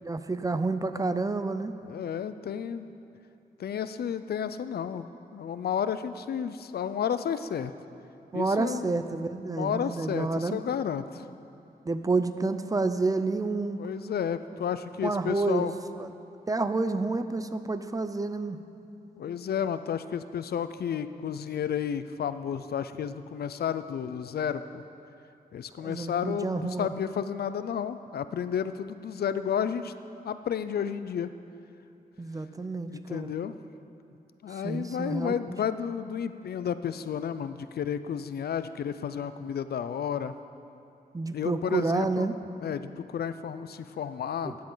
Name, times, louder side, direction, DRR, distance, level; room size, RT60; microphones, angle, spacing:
voice 1, 0.0-1.7 8.3-10.6 11.9-13.8 15.0-15.7 16.0-16.1 16.5-18.6 25.8-26.9 32.2-33.3 34.6-35.3 41.1-42.3 44.4-44.6, right 3 dB, 20° right, 10 dB, 0.5 m, -29 dB
voice 2, 1.8-2.9 3.6-5.1 5.3-7.7 8.3-8.9 9.5-11.2 13.8-15.8 19.2-24.8 25.5-29.9 30.2-31.3 32.9-33.5 34.4-40.3 41.3-42.3 42.6-44.5, left 8 dB, 80° left, 12 dB, 0.5 m, -32 dB
16.0 x 10.5 x 3.9 m, 2.7 s
wide cardioid pair, 120°, 16 cm